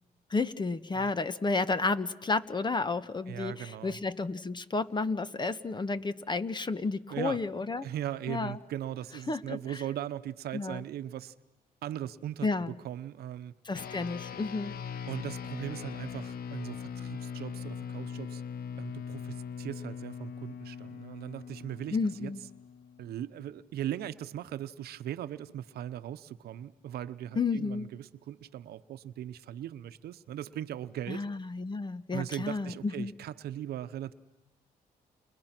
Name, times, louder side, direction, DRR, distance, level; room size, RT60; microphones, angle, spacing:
voice 1, 0.3-7.9 8.3-8.6 9.3-9.6 10.5-10.8 12.4-12.7 13.6-14.7 21.9-22.4 27.3-27.9 31.1-33.1, left 3 dB, 30° left, 1.4 m, -31 dB
voice 2, 3.3-4.0 7.1-7.4 7.8-11.3 11.8-12.5 12.8-13.5 15.1-18.4 18.8-22.3 23.0-31.3 32.1-34.1, right 11 dB, 80° right, 1.0 m, -39 dB
sound 1, 13.7-23.4, left 7 dB, 70° left, 1.3 m, -41 dB
30.0 x 30.0 x 6.1 m
cardioid pair, 75°, 16 cm